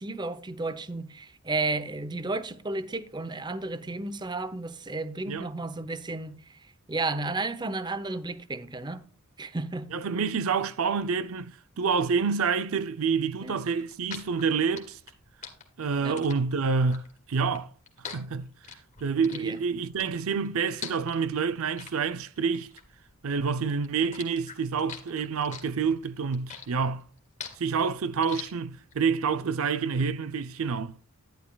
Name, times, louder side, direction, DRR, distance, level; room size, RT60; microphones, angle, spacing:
voice 1, 0.0-6.6 6.9-9.0 9.4-9.9 13.4-13.6 16.0-16.2 19.3-19.6, right 2 dB, 20° right, 0.7 m, -33 dB
voice 2, 9.9-15.0 15.8-17.7 18.1-18.5 19.0-22.7 23.2-27.0 27.6-31.0, right 5 dB, 65° right, 0.5 m, -28 dB
sound 1, 13.7-23.5 23.8-29.0, left 7 dB, 35° left, 2.2 m, -43 dB
11.5 x 11.0 x 2.3 m
head